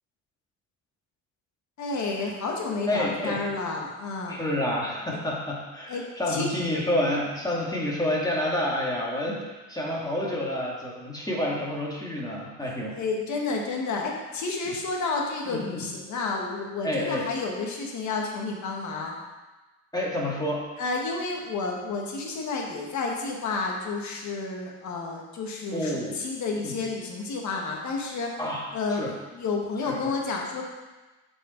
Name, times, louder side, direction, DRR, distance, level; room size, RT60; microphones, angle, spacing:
voice 1, 1.8-4.4 5.9-6.5 13.0-19.1 20.8-28.4 28.7-30.6, left 3 dB, 70° left, 0 dB, 1.6 m, -30 dB
voice 2, 2.9-3.4 4.3-13.0 14.7-14.8 15.5-15.9 16.8-17.3 19.9-20.6 25.7-26.2 26.6-26.8 28.4-29.1 29.9-30.0, left 1 dB, 15° left, -4 dB, 2.2 m, -29 dB
7.5 x 5.3 x 4.5 m, 1.2 s
cardioid pair, 90°, 30 cm